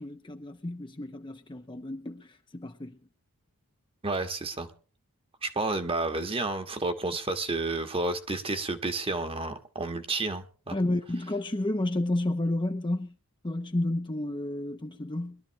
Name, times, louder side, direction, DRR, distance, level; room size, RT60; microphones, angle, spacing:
voice 1, 0.0-3.0 10.7-13.1 13.4-15.4, left 1 dB, 20° left, 0.8 m, -31 dB
voice 2, 4.0-4.7 5.4-10.7, right 2 dB, 25° right, 1.4 m, -31 dB
22.0 x 12.5 x 3.2 m
head